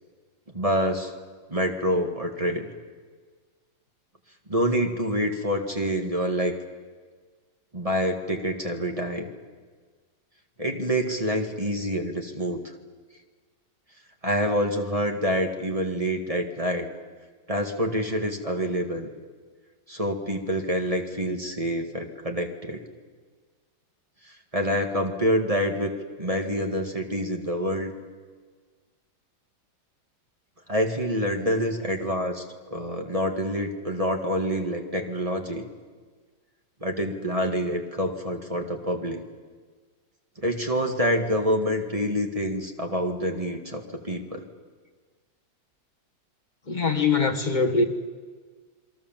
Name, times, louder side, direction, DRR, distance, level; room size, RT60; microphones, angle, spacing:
voice 1, 0.5-1.1 1.5-2.7 4.5-6.5 7.7-9.3 10.6-12.6 14.2-16.9 17.5-19.1 19.9-22.9 24.5-27.9 30.7-32.4 32.7-35.7 36.8-39.2 40.4-44.5, equal, 20° right, 2.1 m, -27 dB
voice 2, 46.7-47.8, left 4 dB, 25° left, 1.8 m, -22 dB
28.0 x 22.5 x 7.6 m
omnidirectional pair, 2.1 m